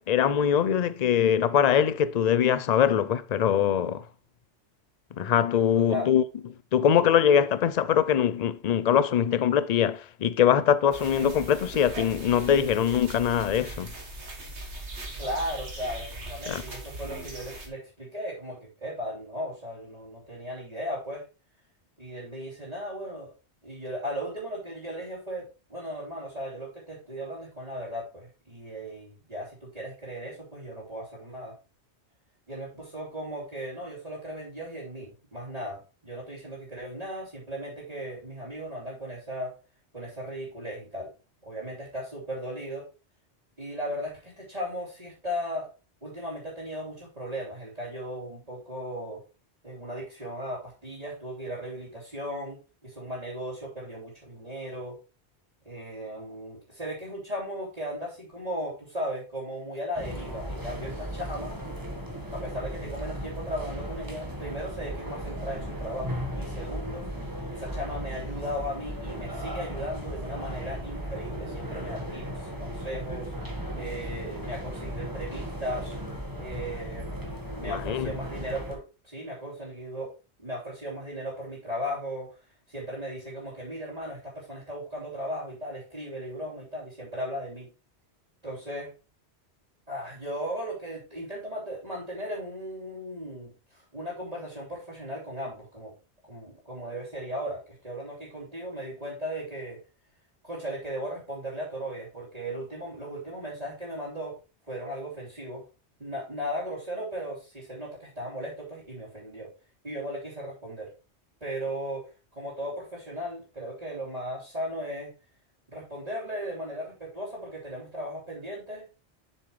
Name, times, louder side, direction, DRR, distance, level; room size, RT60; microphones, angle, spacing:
voice 1, 0.0-4.0 5.2-6.2 6.7-13.9 16.5-16.6 77.6-78.1, left 9 dB, 50° left, 0.5 m, -23 dB
voice 2, 5.7-6.1 15.2-21.2 22.0-23.3 23.6-31.6 32.5-39.6 39.9-41.1 41.4-42.9 43.6-45.7 46.0-49.2 49.6-55.0 55.6-61.5 62.3-67.1 67.5-76.0 76.4-80.1 80.4-82.3 82.7-87.7 88.4-88.9 89.9-95.9 96.2-99.8 100.4-104.4 104.7-105.6 106.0-109.5 109.8-110.9 111.4-112.1 112.3-115.1 115.7-118.8, equal, 35° right, 3.1 m, -36 dB
sound 1, 10.9-17.7, right 2 dB, 75° right, 2.1 m, -39 dB
sound 2, 60.0-78.8, equal, 20° right, 1.5 m, -36 dB
7.4 x 6.6 x 3.2 m
omnidirectional pair, 1.2 m